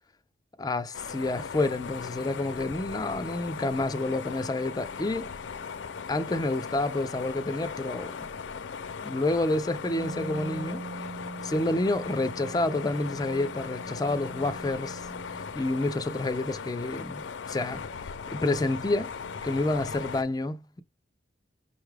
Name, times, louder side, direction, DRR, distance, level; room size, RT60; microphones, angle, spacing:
voice 1, 0.6-5.3 6.1-8.2 9.0-10.8 11.4-15.1 15.5-17.9 18.3-19.1 19.4-20.8, left 2 dB, 20° left, 0.4 m, -29 dB
sound 1, 0.9-20.2, left 5 dB, 85° left, 0.5 m, -38 dB
Wind instrument woodwind instrument, 9.8-15.5, right 3 dB, 70° right, 1.2 m, -42 dB
5.3 x 2.3 x 3.2 m
head